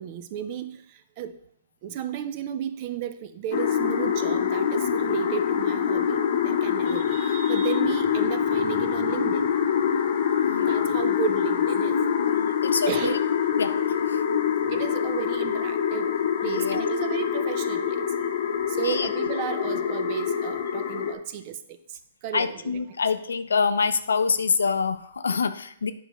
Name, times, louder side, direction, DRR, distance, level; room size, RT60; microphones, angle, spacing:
voice 1, 0.0-1.4 1.8-9.5 10.6-12.0 12.9-13.2 14.7-16.1 16.4-18.1 18.7-22.7, right 9 dB, 40° right, 11 dB, 0.5 m, -33 dB
sound 1, 3.5-21.1, left 8 dB, 60° left, 0.8 m, -25 dB
voice 2, 10.4-10.8 12.2-13.2 13.6-13.8 14.1-14.2 16.4-16.8 18.8-19.1 22.3-25.9, left 5 dB, 85° left, 12 dB, 0.5 m, -26 dB
8.3 x 5.4 x 3.0 m, 0.70 s
hypercardioid pair, 140°, 0 cm